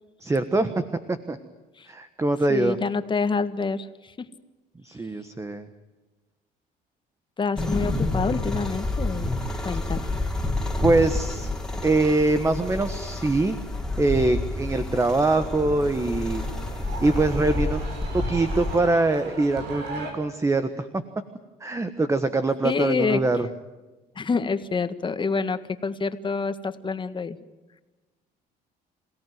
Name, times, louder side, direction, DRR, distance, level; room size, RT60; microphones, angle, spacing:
voice 1, 0.2-1.4 1.9-2.8 4.8-5.7 10.8-11.5 11.8-13.6 14.0-16.4 17.0-17.8 18.1-21.0 21.6-23.5, right 2 dB, 15° right, 10 dB, 1.4 m, -23 dB
voice 2, 2.5-4.3 7.4-9.3 9.6-10.1 22.6-23.2 24.2-27.4, left 4 dB, 30° left, 10 dB, 1.7 m, -27 dB
sound 1, 7.6-18.8, left 2 dB, 5° left, 3.3 m, -29 dB
sound 2, 14.9-20.1, right 3 dB, 90° right, 6.5 m, -38 dB
27.5 x 17.5 x 9.4 m, 1.2 s
cardioid pair, 110°, 17 cm